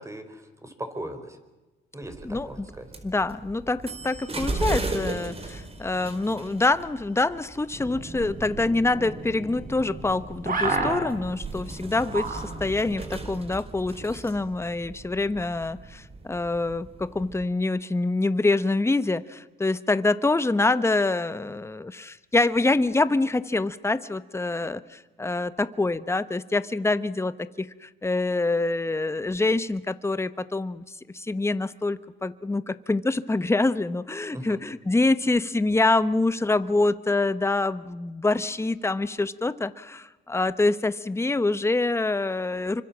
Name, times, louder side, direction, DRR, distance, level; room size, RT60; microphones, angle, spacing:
voice 1, 0.0-1.4 1.9-2.9 34.3-34.6, right 1 dB, 15° right, 8 dB, 4.7 m, -38 dB
sound 1, 2.0-17.4, right 2 dB, 30° right, 4.2 m, -37 dB
voice 2, 2.2-2.7 3.0-30.8 31.1-42.8, left 2 dB, 15° left, 13 dB, 1.1 m, -25 dB
sound 2, 7.7-12.9, right 3 dB, 45° right, 7.3 m, -33 dB
28.0 x 24.5 x 7.4 m, 1.1 s
cardioid pair, 90°, 20 cm